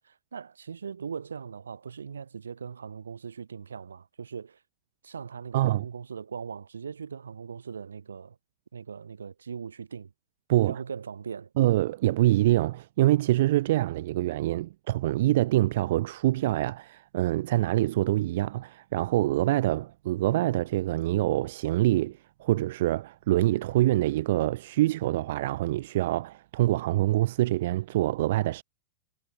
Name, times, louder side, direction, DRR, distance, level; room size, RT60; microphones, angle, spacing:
voice 1, 0.0-4.6 5.0-8.4 8.7-10.1 10.5-11.5, right 6 dB, 80° right, 6.7 m, -40 dB
voice 2, 5.5-5.9 10.5-10.7 11.6-28.6, right 16 dB, 60° right, 0.7 m, -25 dB
figure-of-eight pair, 95°, 0 cm